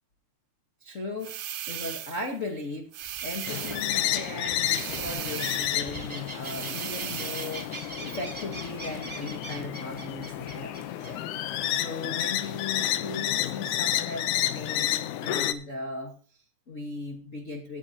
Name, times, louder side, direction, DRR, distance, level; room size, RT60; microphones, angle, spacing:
voice 1, 0.8-2.9 3.2-7.7 8.0-17.8, left 2 dB, 65° left, 3 dB, 0.7 m, -38 dB
sound 1, 1.2-2.3 2.9-4.0 4.6-5.8 6.4-7.7, right 11 dB, 70° right, 1.5 m, -37 dB
sound 2, 3.0-11.1, right 2 dB, 15° right, 1.0 m, -42 dB
sound 3, 3.5-15.5, left 12 dB, 90° left, 2.2 m, -31 dB
17.5 x 9.3 x 2.8 m, 0.43 s
omnidirectional pair, 3.4 m